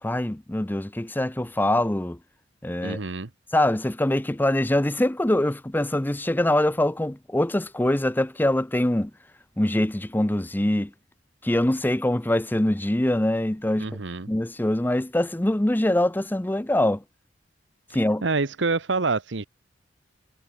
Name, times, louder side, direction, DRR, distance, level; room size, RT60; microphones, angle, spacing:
voice 1, 0.0-2.2 2.6-3.0 3.5-9.1 9.6-10.9 11.4-13.9 14.3-17.0 17.9-18.2, left 1 dB, 10° left, 0.6 m, -23 dB
voice 2, 2.8-3.3 13.8-14.3 18.2-19.4, right 3 dB, 75° right, 1.1 m, -26 dB
head